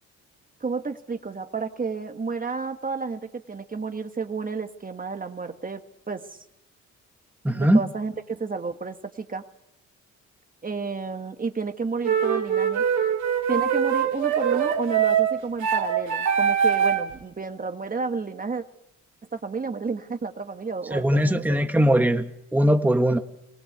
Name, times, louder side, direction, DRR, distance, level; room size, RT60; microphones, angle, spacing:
voice 1, 0.6-5.8 6.1-6.3 7.5-9.4 10.6-12.8 13.5-18.6 19.3-21.6, right 4 dB, 30° right, 8 dB, 1.5 m, -31 dB
voice 2, 7.4-7.8 20.9-23.2, equal, 5° right, 6 dB, 1.4 m, -20 dB
sound 1, 12.0-17.1, right 8 dB, 70° right, 2.3 m, -23 dB
21.0 x 17.0 x 8.1 m, 0.82 s
cardioid pair, 90°, 30 cm